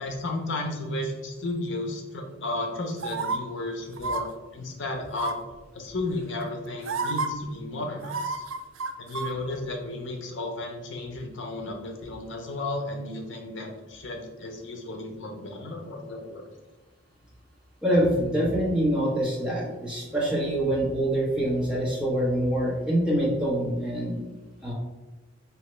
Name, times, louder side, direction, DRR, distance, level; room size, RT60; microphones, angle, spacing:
voice 1, 0.0-5.4 5.7-8.4 9.0-16.4, left 2 dB, 65° left, 2 dB, 0.7 m, -33 dB
sound 1, 3.0-3.4 4.0-4.2 5.1-5.5 6.4-6.5 6.8-7.3 8.0-9.3 9.6-9.7, right 4 dB, 90° right, 0.4 m, -30 dB
voice 2, 17.8-24.2 24.6-24.7, right 1 dB, 5° right, -6 dB, 1.1 m, -25 dB
4.8 x 2.9 x 3.2 m, 1.2 s
head